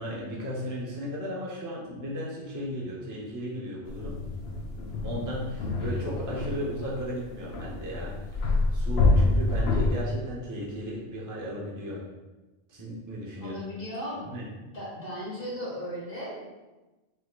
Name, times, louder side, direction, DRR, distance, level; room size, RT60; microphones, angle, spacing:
voice 1, 0.0-4.2 5.0-8.1 8.4-12.0 12.7-13.5 14.3-14.5, equal, 20° right, -5 dB, 0.6 m, -35 dB
sound 1, 3.9-10.0, left 2 dB, 75° left, 0.8 m, -27 dB
voice 2, 13.4-16.5, equal, 60° left, -6 dB, 1.7 m, -37 dB
4.3 x 3.5 x 2.3 m, 1.1 s
omnidirectional pair, 1.1 m